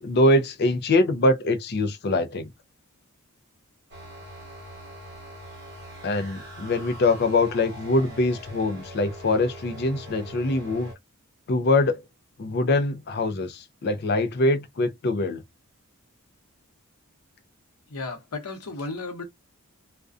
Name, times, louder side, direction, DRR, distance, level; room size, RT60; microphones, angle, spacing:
voice 1, 0.0-2.5 6.0-10.9 11.5-12.0 12.4-15.4, left 2 dB, 45° left, 0.4 m, -23 dB
sound 1, 3.9-10.9, equal, 50° right, 0.8 m, -42 dB
voice 2, 17.9-19.2, left 3 dB, 80° left, 0.8 m, -34 dB
2.4 x 2.1 x 2.4 m
head